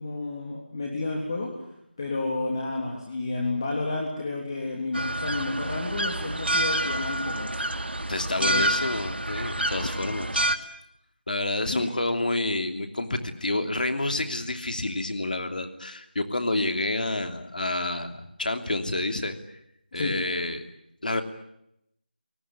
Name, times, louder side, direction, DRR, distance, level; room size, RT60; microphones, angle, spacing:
voice 1, 0.0-1.5 2.0-7.7 8.3-8.7 11.7-11.9 19.9-20.1, left 2 dB, 25° left, -1 dB, 3.3 m, -31 dB
sound 1, 4.9-10.6, right 1 dB, 85° right, 2.7 m, -28 dB
voice 2, 8.1-10.4 11.3-19.3 19.9-20.6 21.0-21.2, left 2 dB, 55° left, 7 dB, 3.0 m, -29 dB
28.5 x 19.5 x 9.9 m, 0.79 s
figure-of-eight pair, 175°, 6 cm